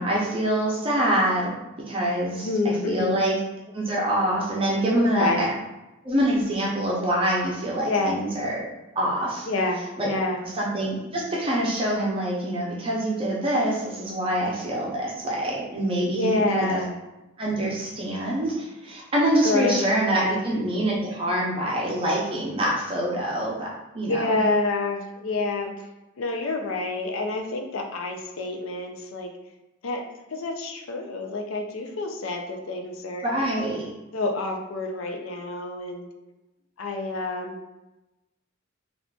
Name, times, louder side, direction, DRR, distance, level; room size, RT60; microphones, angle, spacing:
voice 1, 0.0-1.6 1.9-3.4 3.7-5.5 6.0-8.6 8.9-9.5 10.0-10.1 10.4-16.8 17.4-23.7 23.9-24.4 33.2-33.8, right 1 dB, 30° right, -5 dB, 0.6 m, -25 dB
voice 2, 2.4-3.3 5.0-5.5 7.9-8.2 9.5-10.4 16.1-17.0 19.4-19.9 20.1-20.4 24.0-25.7 26.2-29.3 29.8-33.3 34.1-36.1 36.8-37.6, left 2 dB, 85° left, 3 dB, 0.4 m, -28 dB
3.6 x 2.4 x 2.3 m, 0.98 s
head